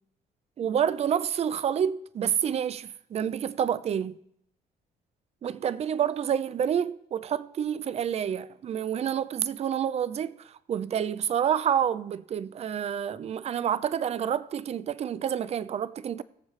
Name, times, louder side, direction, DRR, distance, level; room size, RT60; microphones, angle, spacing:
voice 1, 0.6-4.2 5.4-16.2, right 9 dB, 40° right, 0.5 m, -28 dB
19.0 x 7.2 x 3.2 m
cardioid pair, 110°, 17 cm